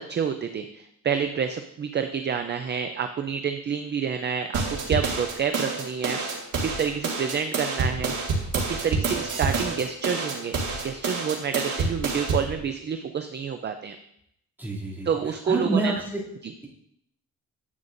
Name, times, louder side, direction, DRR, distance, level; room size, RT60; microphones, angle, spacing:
voice 1, 0.0-6.2 6.6-10.6 10.8-14.0 15.1-15.9 16.4-16.5, right 7 dB, 35° right, 7 dB, 0.4 m, -28 dB
sound 1, 4.5-12.5, right 3 dB, 85° right, 1.8 m, -28 dB
voice 2, 14.6-16.2, right 3 dB, 5° right, -8 dB, 2.6 m, -28 dB
11.0 x 8.1 x 2.5 m, 0.74 s
wide cardioid pair, 175°, 30 cm